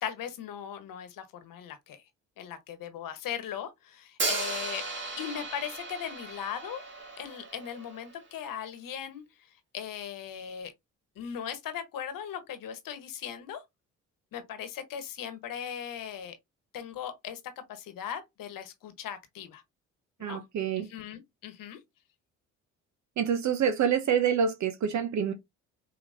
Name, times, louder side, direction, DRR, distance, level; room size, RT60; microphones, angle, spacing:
voice 1, 0.0-2.0 2.4-4.8 5.2-6.8 7.2-9.2 9.7-10.7 11.2-13.6 14.3-16.4 16.7-17.4 17.7-19.6 20.2-20.4 20.8-21.8, left 9 dB, 60° left, 1.2 m, -38 dB
Hi-hat, 4.2-8.2, right 3 dB, 30° right, 2.2 m, -36 dB
voice 2, 20.2-20.9 23.2-25.3, right 7 dB, 50° right, 0.7 m, -27 dB
4.9 x 2.9 x 2.6 m
hypercardioid pair, 55°, 37 cm